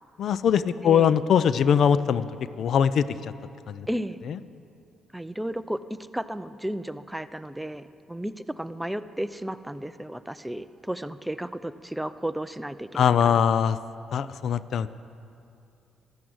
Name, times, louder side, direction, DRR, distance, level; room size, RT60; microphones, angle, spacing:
voice 1, 0.2-2.3 2.6-3.3 3.7-3.9 4.3-4.4 12.9-13.8 14.1-14.9, left 8 dB, 65° left, 15 dB, 0.4 m, -22 dB
voice 2, 3.9-4.2 5.1-13.4, right 1 dB, 5° right, 13 dB, 0.5 m, -33 dB
13.0 x 12.5 x 7.9 m, 2.5 s
cardioid pair, 90°, 0 cm